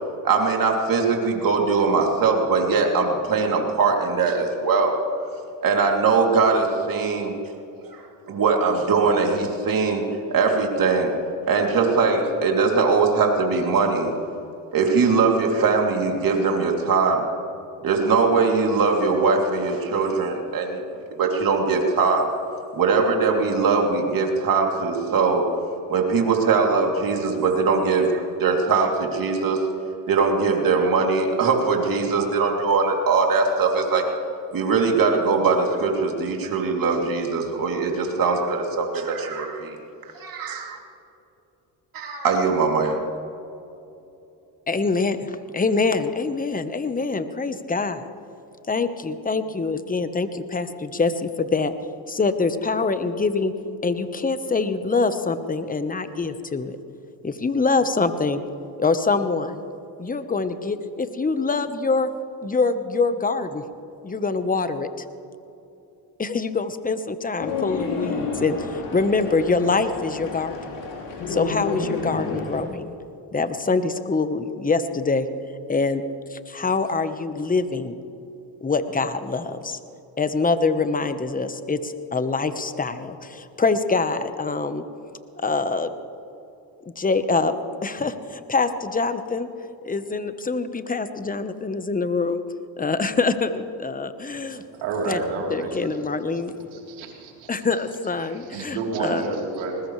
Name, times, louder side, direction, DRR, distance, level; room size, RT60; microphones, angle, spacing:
voice 1, 0.2-5.0 5.6-7.3 7.9-10.0 10.3-11.1 11.5-14.2 14.7-17.2 17.8-20.8 21.2-22.3 22.7-25.5 25.9-29.6 30.1-34.1 34.5-39.8 40.1-40.8 41.9-43.0, right 4 dB, 50° right, 1 dB, 3.1 m, -21 dB
voice 2, 44.7-48.1 48.7-51.7 52.1-53.5 53.8-56.8 57.2-58.4 58.8-59.6 60.0-62.1 62.4-63.6 64.0-65.0 66.2-70.8 71.3-72.9 73.3-75.3 75.7-76.0 76.3-78.0 78.6-79.8 80.2-84.8 85.4-85.9 87.0-87.5 87.8-89.5 89.8-92.4 92.8-94.6 95.1-95.2 95.5-96.5 97.5-99.4, left 4 dB, 20° left, 10 dB, 1.2 m, -24 dB
sound 1, 67.4-72.6, left 4 dB, 80° left, 4.4 m, -30 dB
voice 3, 94.7-95.9 96.7-97.5 98.2-99.8, right 3 dB, 85° right, -1 dB, 3.8 m, -29 dB
20.5 x 19.5 x 3.3 m, 2.8 s
supercardioid pair, 75°, 43 cm